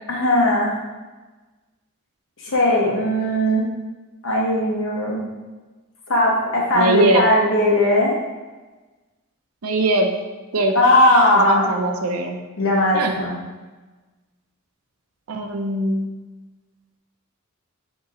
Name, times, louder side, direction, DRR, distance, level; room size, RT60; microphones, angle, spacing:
voice 1, 0.1-0.7 2.4-3.6 4.2-5.2 6.1-8.2 10.7-11.7 12.6-13.4, left 1 dB, 65° left, -3 dB, 1.0 m, -18 dB
voice 2, 6.7-7.2 9.6-10.1 10.5-10.8 11.3-12.4 12.9-13.1 15.3-16.1, right 2 dB, 90° right, 4 dB, 0.5 m, -21 dB
4.1 x 2.9 x 3.7 m, 1.2 s
head